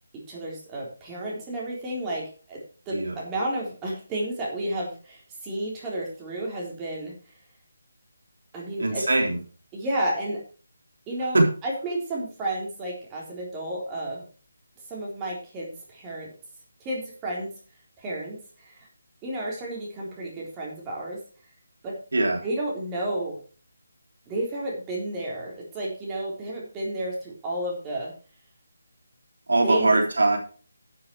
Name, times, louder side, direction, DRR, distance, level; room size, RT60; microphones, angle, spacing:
voice 1, 0.1-7.1 8.5-9.1 9.7-10.4 11.1-14.3 14.9-16.3 16.8-17.5 18.0-18.9 19.2-21.2 21.8-22.0 22.4-23.4 24.3-28.1 29.6-30.0, right 1 dB, 15° right, -4 dB, 3.8 m, -32 dB
voice 2, 8.8-9.4 11.3-11.4 22.1-22.4 29.5-30.4, right 2 dB, 75° right, 2 dB, 3.4 m, -21 dB
12.0 x 7.1 x 4.8 m, 0.39 s
figure-of-eight pair, 160°, 0 cm